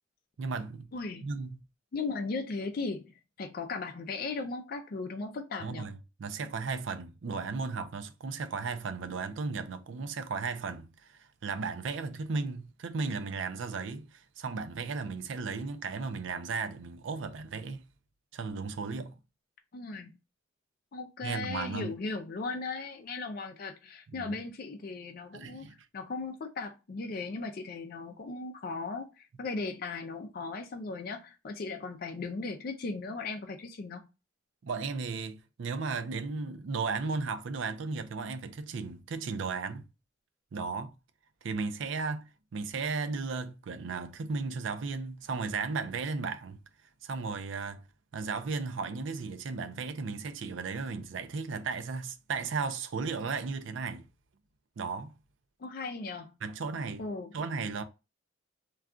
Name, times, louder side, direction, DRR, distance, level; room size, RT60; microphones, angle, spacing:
voice 1, 0.4-0.9 1.2-1.6 5.6-17.9 18.3-19.2 21.2-21.9 24.1-24.4 25.3-25.8 34.6-39.9 40.5-40.9 41.4-46.6 47.0-47.8 48.1-54.1 54.8-55.1 56.4-57.0 57.3-57.8, right 4 dB, 80° right, 0.4 m, -35 dB
voice 2, 0.9-1.3 1.9-5.9 19.7-20.1 20.9-25.7 25.9-34.0 55.6-56.3 57.0-57.3, left 3 dB, 50° left, 0.4 m, -37 dB
2.3 x 2.3 x 3.6 m
head